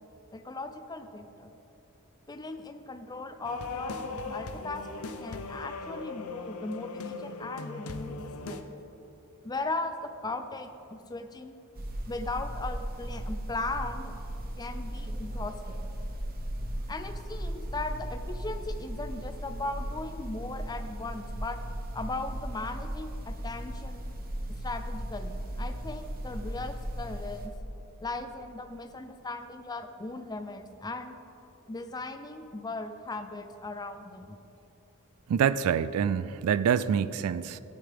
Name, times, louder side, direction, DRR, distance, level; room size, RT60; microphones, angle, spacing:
voice 1, 0.3-1.5 2.3-8.6 9.4-11.5 12.1-14.2 14.6-15.8 16.9-21.6 21.9-24.1 24.5-27.5 28.0-31.2 31.7-34.4, left 2 dB, 20° left, 8 dB, 0.5 m, -38 dB
sound 1, 3.4-8.6, left 3 dB, 70° left, 0.6 m, -38 dB
inside a refrigerator, 11.8-27.5, equal, 40° right, 1.0 m, -37 dB
voice 2, 35.3-37.6, right 8 dB, 75° right, 15 dB, 0.3 m, -26 dB
13.5 x 10.0 x 3.5 m, 2.9 s
head